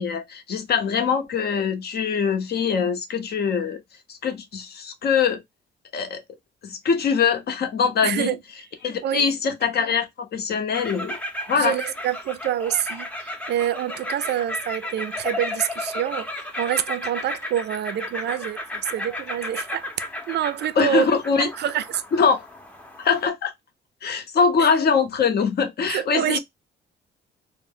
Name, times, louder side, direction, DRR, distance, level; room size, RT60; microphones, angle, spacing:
voice 1, 0.0-3.8 4.1-5.4 5.9-6.2 6.6-8.3 8.8-11.2 11.5-11.7 20.8-21.5 22.2-22.4 23.0-23.5 24.0-26.4, left 6 dB, 55° left, 0.7 m, -23 dB
voice 2, 8.0-8.4 9.0-9.3 11.6-19.9 20.3-21.1 21.4-22.0 24.6-24.7 25.9-26.4, right 11 dB, 60° right, 0.4 m, -27 dB
sound 1, 10.7-23.3, left 1 dB, 5° left, 0.6 m, -34 dB
2.1 x 2.0 x 3.5 m
cardioid pair, 90°, 20 cm